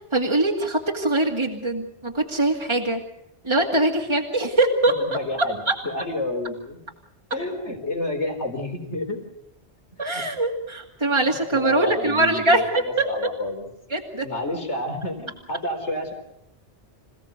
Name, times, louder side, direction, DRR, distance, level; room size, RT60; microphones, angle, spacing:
voice 1, 0.1-3.0 3.4-5.0 5.7-5.8 10.0-13.1 13.9-14.3, right 2 dB, 25° right, -1 dB, 2.4 m, -22 dB
voice 2, 5.0-6.8 7.3-9.2 10.1-10.2 11.5-13.6 14.2-16.1, left 1 dB, 80° left, 4 dB, 4.5 m, -29 dB
27.0 x 17.0 x 8.0 m, 0.80 s
omnidirectional pair, 1.2 m